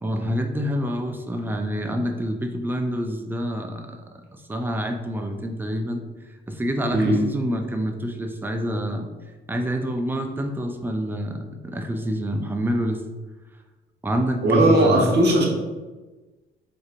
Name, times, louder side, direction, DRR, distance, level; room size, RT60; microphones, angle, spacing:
voice 1, 0.0-6.0 6.5-9.1 9.5-13.0 14.0-15.2, equal, 10° right, 5 dB, 0.4 m, -27 dB
voice 2, 6.9-7.2 14.4-15.4, right 1 dB, 55° right, -1 dB, 1.0 m, -18 dB
3.9 x 2.7 x 2.4 m, 1.2 s
cardioid pair, 90°, 20 cm